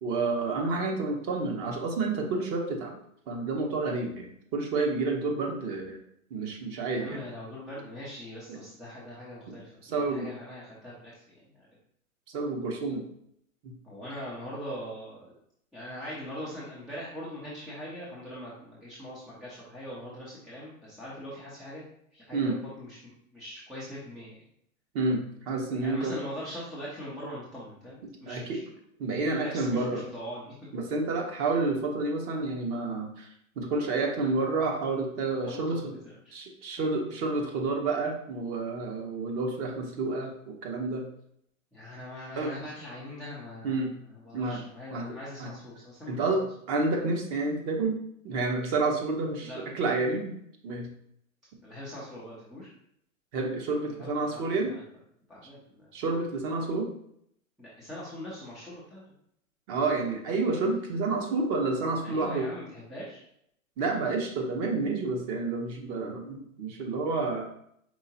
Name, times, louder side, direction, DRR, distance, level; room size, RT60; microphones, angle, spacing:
voice 1, 0.0-2.9 3.3-6.0 6.3-7.2 8.5-8.6 9.5-9.6 9.8-10.3 12.3-13.1 13.6-13.7 22.3-22.6 24.9-26.2 28.3-28.6 29.0-30.0 30.7-33.3 33.6-35.9 36.3-41.0 42.4-42.5 43.6-43.9 44.3-44.6 44.9-45.1 45.4-45.5 46.1-48.0 48.2-50.3 50.6-50.9 53.3-54.7 55.9-56.9 59.7-62.5 63.8-67.4, right 3 dB, 35° right, 2 dB, 0.9 m, -29 dB
voice 2, 6.9-11.7 13.8-15.3 15.7-21.8 22.1-24.4 25.8-28.7 29.4-30.6 35.4-35.8 36.0-36.4 36.8-36.9 41.7-46.5 49.4-49.6 51.6-52.7 54.0-54.8 55.3-55.9 57.6-59.0 62.0-63.2, equal, ahead, -8 dB, 0.3 m, -42 dB
4.7 x 3.6 x 2.8 m, 0.71 s
hypercardioid pair, 120°, 41 cm